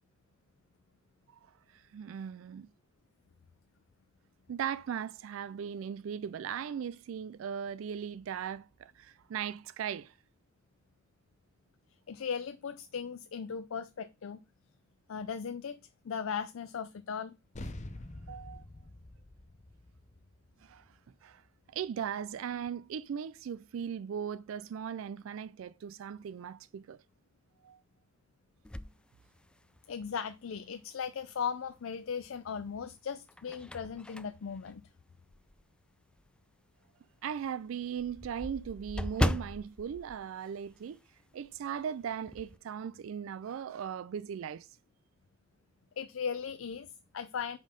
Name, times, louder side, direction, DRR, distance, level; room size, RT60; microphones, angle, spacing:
voice 1, 1.7-2.7 4.5-10.1 18.3-18.6 20.6-20.9 21.2-21.4 21.7-27.0 27.6-27.8 37.2-41.0 41.3-44.7, right 8 dB, 80° right, 0.3 m, -38 dB
voice 2, 12.1-14.4 15.1-15.8 16.0-17.3 29.9-34.8 46.0-47.6, left 6 dB, 80° left, 0.5 m, -37 dB
sound 1, 17.5-22.3, left 1 dB, 35° left, 0.8 m, -47 dB
sound 2, 28.6-30.0 30.5-30.6 32.1-32.6 33.1-35.7 36.2-36.3 36.7-36.8 37.1-37.2 37.4-41.2 41.4-41.7 42.0-42.6, left 1 dB, 5° left, 0.3 m, -37 dB
5.5 x 5.2 x 5.1 m
head